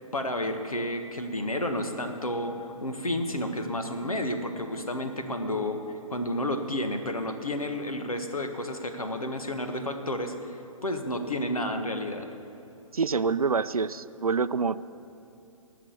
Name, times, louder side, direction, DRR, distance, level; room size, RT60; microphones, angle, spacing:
voice 1, 0.1-12.3, left 1 dB, 80° left, 6 dB, 1.5 m, -31 dB
voice 2, 12.9-14.9, right 5 dB, 80° right, 15 dB, 0.5 m, -26 dB
18.5 x 6.7 x 8.2 m, 2.8 s
figure-of-eight pair, 130°, 18 cm